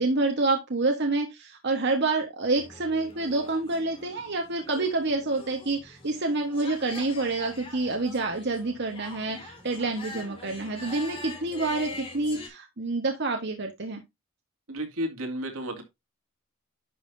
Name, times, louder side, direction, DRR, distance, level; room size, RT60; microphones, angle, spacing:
voice 1, 0.0-14.0, right 3 dB, 50° right, 1.2 m, -28 dB
sound 1, 2.6-12.5, left 2 dB, 25° left, 2.6 m, -44 dB
voice 2, 14.7-15.8, equal, 80° right, 2.3 m, -32 dB
11.0 x 5.5 x 2.6 m
head